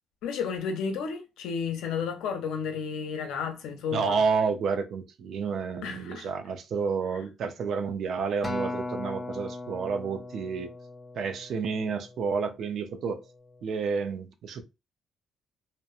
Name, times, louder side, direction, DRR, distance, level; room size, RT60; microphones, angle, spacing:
voice 1, 0.2-4.2 5.8-6.3, left 6 dB, 90° left, 0.6 m, -32 dB
voice 2, 3.9-10.7 11.2-13.2 13.6-14.6, right 5 dB, 65° right, 0.5 m, -30 dB
Acoustic guitar, 8.4-12.8 13.5-13.6, left 2 dB, 20° left, 0.5 m, -38 dB
2.9 x 2.1 x 2.4 m
cardioid pair, 100°, 0 cm